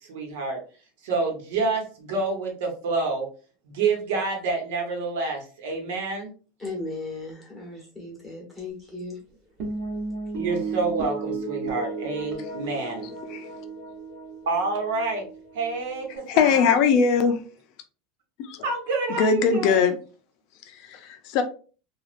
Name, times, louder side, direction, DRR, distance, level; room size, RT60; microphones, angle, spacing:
voice 1, 0.1-0.6 1.0-3.3 3.6-6.3 10.3-13.1 14.5-15.2 15.5-16.7 18.6-19.8, right 4 dB, 75° right, 1 dB, 1.1 m, -28 dB
voice 2, 6.6-9.2, left 2 dB, 5° left, -3 dB, 1.1 m, -36 dB
sound 1, 9.6-16.2, right 3 dB, 50° right, 1.1 m, -34 dB
voice 3, 16.3-17.4 18.4-18.7 19.2-20.0 20.7-21.4, left 6 dB, 45° left, 8 dB, 0.5 m, -21 dB
3.1 x 2.4 x 2.5 m, 0.37 s
supercardioid pair, 165°, 0 cm